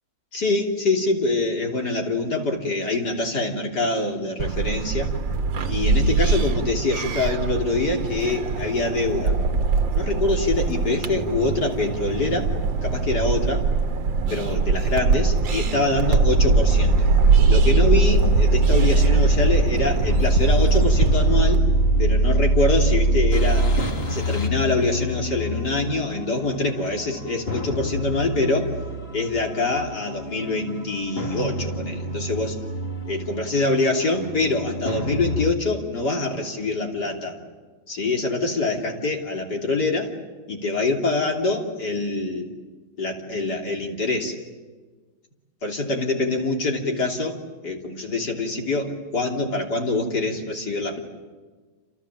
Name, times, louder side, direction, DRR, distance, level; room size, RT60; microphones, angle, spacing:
voice 1, 0.3-5.1 5.7-9.4 9.9-12.5 12.8-13.7 14.3-17.1 17.5-21.6 22.0-23.7 24.1-28.7 29.1-32.6 33.0-37.4 37.9-40.1 40.5-42.5 43.0-44.4 45.6-47.3 47.6-51.0, left 2 dB, 55° left, 1 dB, 3.7 m, -25 dB
sound 1, 4.4-21.6, right 4 dB, 70° right, 2.0 m, -23 dB
sound 2, 16.7-35.5, right 2 dB, 30° left, 2.7 m, -23 dB
28.5 x 28.0 x 7.5 m, 1.4 s
omnidirectional pair, 2.2 m